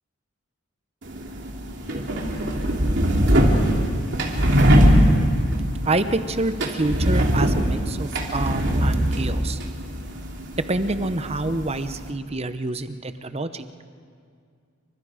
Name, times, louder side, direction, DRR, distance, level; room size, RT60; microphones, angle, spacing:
sound 1, 1.0-12.1, equal, 60° right, 3.1 m, -21 dB
voice 1, 5.8-9.6 10.7-13.7, right 2 dB, 30° right, 10 dB, 0.9 m, -27 dB
28.0 x 25.0 x 5.1 m, 2.2 s
head